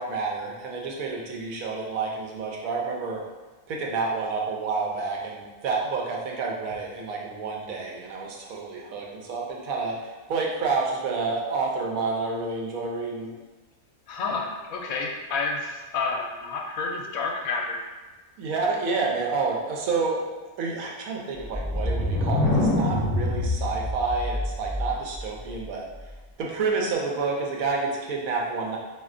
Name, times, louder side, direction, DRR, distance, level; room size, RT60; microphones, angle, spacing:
voice 1, 0.0-3.2 3.7-10.0 10.3-13.3 18.4-20.2 20.6-25.8 26.4-28.8, right 4 dB, 85° right, -1 dB, 1.1 m, -29 dB
voice 2, 14.1-17.8, left 4 dB, 90° left, 1 dB, 1.0 m, -30 dB
sound 1, 21.4-25.2, left 1 dB, 10° right, 1.5 m, -25 dB
4.2 x 2.8 x 2.4 m, 1.3 s
omnidirectional pair, 1.4 m